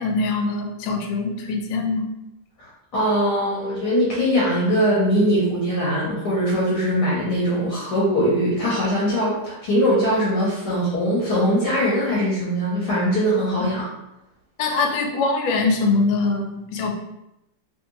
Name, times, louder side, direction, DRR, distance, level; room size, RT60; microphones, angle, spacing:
voice 1, 0.0-2.1 13.6-13.7 14.6-16.9, left 3 dB, 90° left, 3 dB, 1.3 m, -23 dB
voice 2, 2.6-13.9, equal, 70° left, -6 dB, 1.3 m, -21 dB
3.2 x 2.6 x 2.8 m, 0.89 s
omnidirectional pair, 2.0 m